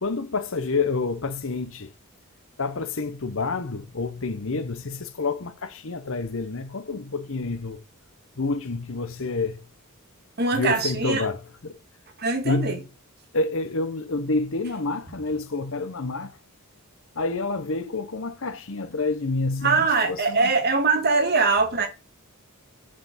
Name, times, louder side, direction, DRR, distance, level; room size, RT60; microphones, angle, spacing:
voice 1, 0.0-1.9 2.6-7.8 8.4-9.7 10.5-11.8 12.4-12.8 13.3-16.4 17.2-20.5, left 3 dB, 60° left, 0.9 m, -28 dB
voice 2, 10.4-11.3 12.2-12.8 19.6-21.9, right 4 dB, 45° right, 1.6 m, -22 dB
6.4 x 4.9 x 5.7 m
head